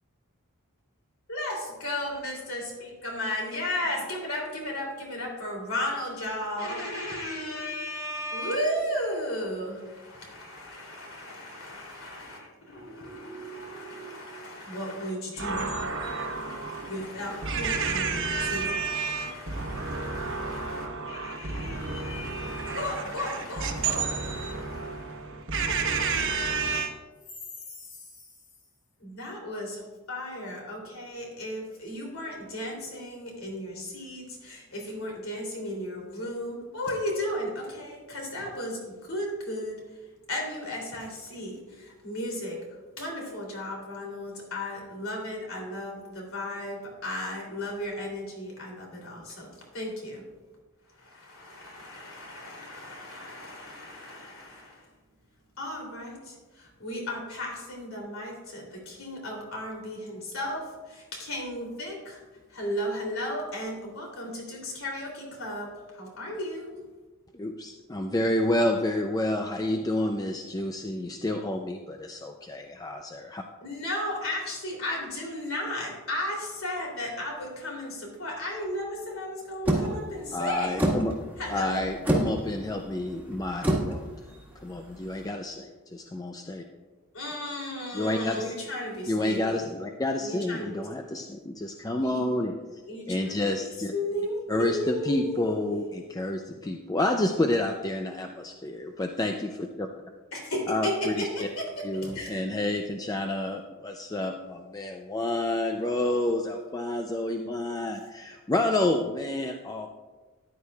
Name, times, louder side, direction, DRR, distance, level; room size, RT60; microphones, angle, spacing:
voice 1, 1.3-25.2 27.7-28.1 29.0-40.0 40.3-50.2 50.9-54.9 55.6-62.2 62.5-66.7 73.6-80.9 81.4-81.8 87.1-89.7 90.2-90.9 92.0-92.2 92.9-95.9 100.3-102.4, left 1 dB, 70° left, 3.0 m, -35 dB
voice 2, 15.4-26.9, right 4 dB, 55° right, 1.1 m, -31 dB
voice 3, 67.3-73.4 80.3-81.1 81.5-84.1 84.6-86.6 87.9-88.6 89.1-92.8 93.1-93.9 94.5-99.9 100.7-101.5 101.8-109.9, left 1 dB, 15° left, 0.4 m, -29 dB
sound 1, 79.7-85.3, right 1 dB, 10° right, 1.6 m, -29 dB
14.0 x 10.5 x 2.3 m
head